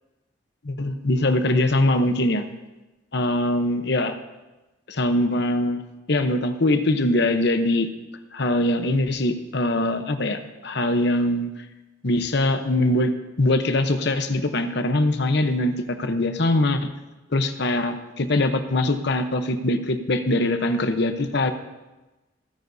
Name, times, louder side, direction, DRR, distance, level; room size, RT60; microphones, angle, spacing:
voice 1, 0.6-2.4 3.1-4.2 4.9-5.8 6.1-7.9 8.3-11.5 12.0-13.1 13.4-16.9 17.3-21.5, left 1 dB, 65° left, 8 dB, 0.9 m, -22 dB
26.5 x 9.3 x 2.7 m, 1.1 s
head